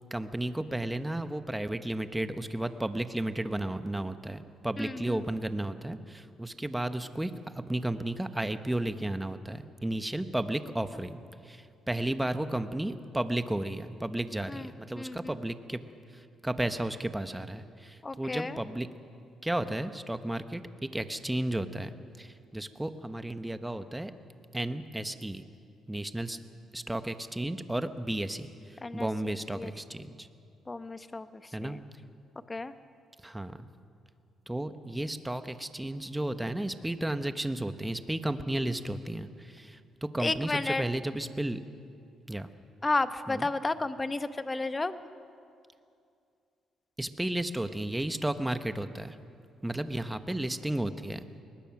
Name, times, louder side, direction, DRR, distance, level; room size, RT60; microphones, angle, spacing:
voice 1, 0.1-15.8 16.1-18.9 19.4-24.1 24.5-25.4 25.9-26.4 26.7-30.3 31.5-31.8 33.2-33.6 34.5-41.6 42.3-42.5 43.3-43.5 47.0-49.2 49.6-51.2, right 1 dB, 10° right, 10 dB, 1.0 m, -33 dB
voice 2, 4.8-5.2 14.5-14.7 15.0-15.3 18.0-18.6 28.8-29.1 29.6-29.7 30.7-31.3 31.6-31.8 32.5-32.7 40.2-40.8 42.8-45.0, left 3 dB, 25° left, 11 dB, 0.9 m, -32 dB
22.0 x 20.0 x 6.0 m, 2.4 s
cardioid pair, 90°, 0 cm